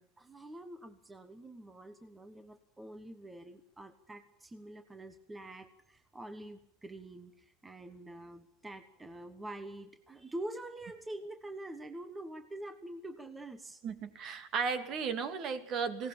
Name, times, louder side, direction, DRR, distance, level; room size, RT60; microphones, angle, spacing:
voice 1, 0.2-13.8, right 1 dB, 10° right, 9 dB, 1.3 m, -46 dB
voice 2, 13.8-16.1, right 5 dB, 40° right, 9 dB, 2.7 m, -35 dB
20.0 x 18.5 x 8.9 m, 0.80 s
supercardioid pair, 145°, 0 cm